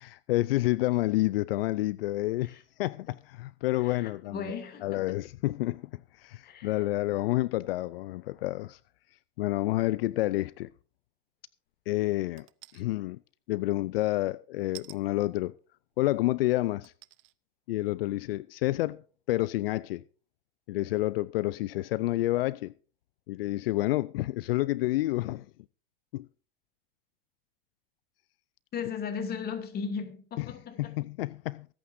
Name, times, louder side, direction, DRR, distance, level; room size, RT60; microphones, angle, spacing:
voice 1, 0.0-4.5 4.8-8.8 9.4-10.7 11.9-12.5 12.7-13.2 13.5-15.5 16.0-16.9 17.7-19.0 19.3-20.0 20.7-22.7 23.3-25.5 26.1-26.3 30.4-30.5 30.8-31.7, left 17 dB, 75° left, 0.4 m, -29 dB
voice 2, 3.8-5.2 6.4-6.7 28.7-30.9, left 6 dB, 35° left, 2.6 m, -37 dB
sound 1, 12.4-12.8 14.7-15.0 15.9-16.0 16.8-17.3 17.9-18.0, right 21 dB, 40° right, 0.7 m, -48 dB
24.0 x 8.7 x 2.6 m
hypercardioid pair, 110°, 29 cm